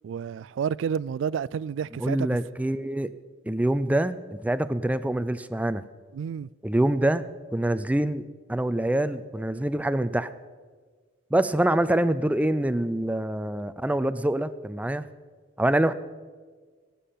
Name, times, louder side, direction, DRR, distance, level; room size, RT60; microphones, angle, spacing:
voice 1, 0.0-2.3 6.1-6.5, right 7 dB, 80° right, 0.3 m, -30 dB
voice 2, 2.0-3.1 3.5-5.8 6.6-7.2 7.5-8.2 8.5-10.3 11.3-15.0 15.6-15.9, right 1 dB, 10° right, 0.4 m, -25 dB
18.0 x 8.4 x 5.8 m
head